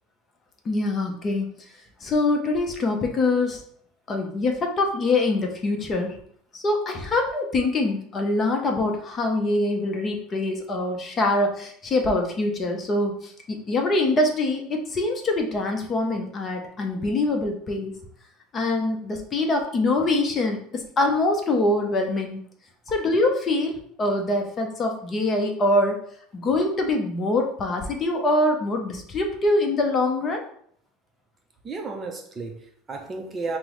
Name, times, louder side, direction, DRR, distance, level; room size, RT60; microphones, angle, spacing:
voice 1, 0.7-1.5 2.0-3.6 4.1-6.1 6.5-18.0 18.5-22.4 22.9-26.0 26.3-30.4, left 2 dB, 25° left, 3 dB, 0.6 m, -24 dB
voice 2, 31.6-33.6, right 3 dB, 20° right, 3 dB, 0.5 m, -33 dB
5.4 x 2.0 x 3.0 m, 0.62 s
cardioid pair, 145°, 0 cm